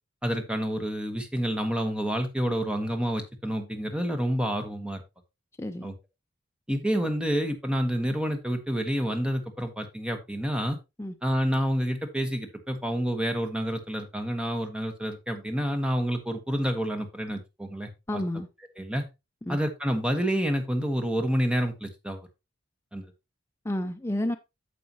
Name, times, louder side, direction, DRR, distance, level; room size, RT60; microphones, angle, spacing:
voice 1, 0.2-5.0 5.8-5.9 6.7-10.8 11.2-18.2 18.8-19.0 19.5-22.2 22.9-23.1, equal, 5° right, 5 dB, 1.3 m, -28 dB
voice 2, 5.6-5.9 11.0-11.2 18.1-18.5 19.5-19.6 23.6-24.4, left 1 dB, 15° left, 6 dB, 0.5 m, -30 dB
9.4 x 6.7 x 2.9 m, 0.24 s
head